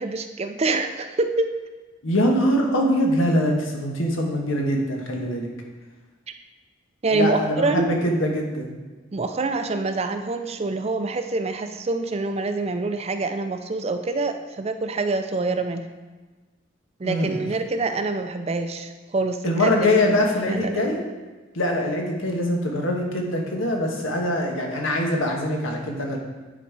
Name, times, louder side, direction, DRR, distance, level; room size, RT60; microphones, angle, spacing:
voice 1, 0.0-1.5 7.0-7.9 9.1-15.9 17.0-20.1 20.4-21.0, right 3 dB, 30° right, 8 dB, 0.4 m, -26 dB
voice 2, 2.0-5.5 7.1-8.7 17.0-17.4 19.4-21.0 21.5-26.2, left 1 dB, 90° left, 1 dB, 1.4 m, -23 dB
9.9 x 4.2 x 4.7 m, 1.3 s
head